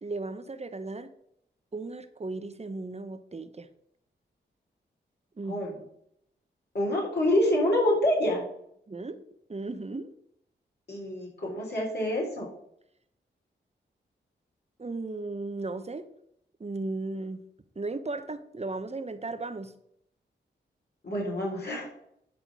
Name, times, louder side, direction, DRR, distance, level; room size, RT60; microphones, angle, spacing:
voice 1, 0.0-1.1 1.7-3.7 5.4-5.7 8.9-9.2 9.5-10.1 14.8-16.1 16.6-17.5 17.7-19.7, right 3 dB, 30° right, 10 dB, 1.0 m, -36 dB
voice 2, 6.7-8.4 10.9-12.5 21.0-21.9, left 1 dB, 55° left, -3 dB, 3.5 m, -26 dB
10.5 x 3.7 x 6.1 m, 0.74 s
cardioid pair, 45°, 20 cm